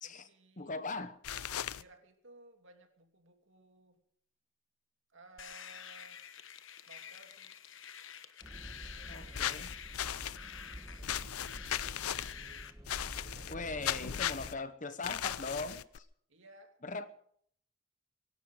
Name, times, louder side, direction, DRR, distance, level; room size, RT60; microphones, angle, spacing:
voice 1, 0.0-0.8 1.3-4.0 5.1-6.2 6.9-7.6 9.0-9.6 10.9-12.7 13.2-14.4 16.3-16.8, right 2 dB, 55° right, 5 dB, 2.9 m, -60 dB
voice 2, 0.6-1.2 9.1-9.7 13.5-16.1 16.8-17.1, left 3 dB, 35° left, 12 dB, 1.0 m, -40 dB
sound 1, 1.2-1.8 9.3-10.4 11.0-12.3 12.9-13.5 13.8-14.5 15.0-16.0, left 10 dB, 85° left, 0.6 m, -37 dB
sound 2, 5.4-12.7, left 8 dB, 60° left, 1.2 m, -49 dB
sound 3, 8.4-14.5, equal, 15° right, 1.3 m, -49 dB
24.0 x 11.5 x 5.1 m, 0.64 s
head